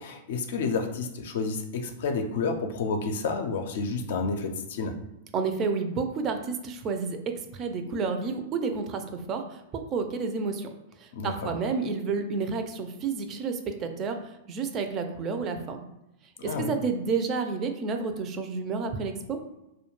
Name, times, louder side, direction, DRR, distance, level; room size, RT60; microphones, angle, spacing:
voice 1, 0.0-4.9 11.1-11.6 16.4-16.7, left 4 dB, 65° left, 5 dB, 0.4 m, -30 dB
voice 2, 5.3-10.7 11.0-15.8 16.4-19.4, right 4 dB, 35° right, 6 dB, 0.4 m, -30 dB
2.3 x 2.1 x 3.0 m, 0.92 s
hypercardioid pair, 105°, 0 cm